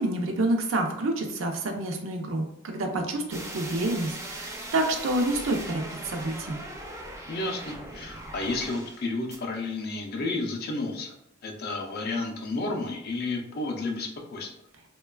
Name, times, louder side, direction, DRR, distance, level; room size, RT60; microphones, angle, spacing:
voice 1, 0.0-6.6, right 2 dB, 80° right, 3 dB, 0.5 m, -28 dB
sound 1, 3.3-9.0 9.3-9.4, right 1 dB, 15° right, 0.4 m, -39 dB
voice 2, 7.3-11.1 11.4-14.5, left 2 dB, 50° left, 2 dB, 0.5 m, -31 dB
3.0 x 2.2 x 2.2 m, 0.79 s
head